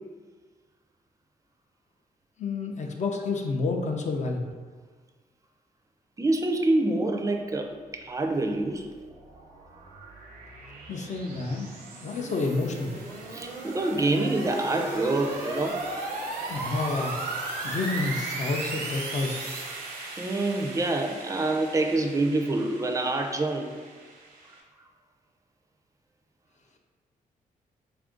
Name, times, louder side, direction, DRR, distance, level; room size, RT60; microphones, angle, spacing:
voice 1, 2.4-4.5 10.9-11.7 12.0-13.0 16.5-19.5, left 3 dB, 50° left, 2 dB, 0.4 m, -29 dB
voice 2, 6.2-8.9 13.3-16.1 20.2-23.8, right 2 dB, 20° right, 4 dB, 0.4 m, -26 dB
sound 1, 8.7-24.6, right 2 dB, 85° right, 0.7 m, -37 dB
3.5 x 2.4 x 3.7 m, 1.5 s
cardioid pair, 90°, 15 cm